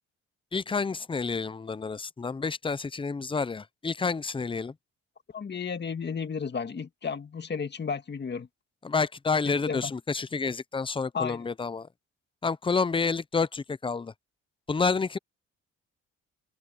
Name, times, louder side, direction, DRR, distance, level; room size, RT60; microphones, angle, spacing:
voice 1, 0.5-4.7 8.8-11.9 12.4-14.1 14.7-15.2, left 4 dB, 15° left, 0.6 m, -29 dB
voice 2, 5.3-8.5 9.5-9.9 11.1-11.5, left 6 dB, 35° left, 1.9 m, -33 dB
cardioid pair, 90°, 30 cm